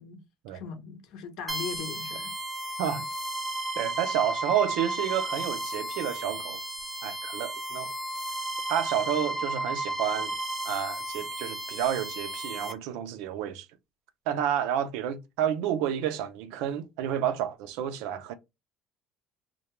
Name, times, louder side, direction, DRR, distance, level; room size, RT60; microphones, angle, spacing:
voice 1, 0.0-2.4, left 7 dB, 60° left, 0.7 m, -40 dB
sound 1, 1.5-12.7, right 1 dB, 10° right, 0.5 m, -33 dB
voice 2, 3.8-6.6 7.0-7.9 8.7-10.3 10.6-13.7 14.3-18.3, right 10 dB, 85° right, 0.4 m, -30 dB
2.2 x 2.2 x 2.9 m
cardioid pair, 155°, 0 cm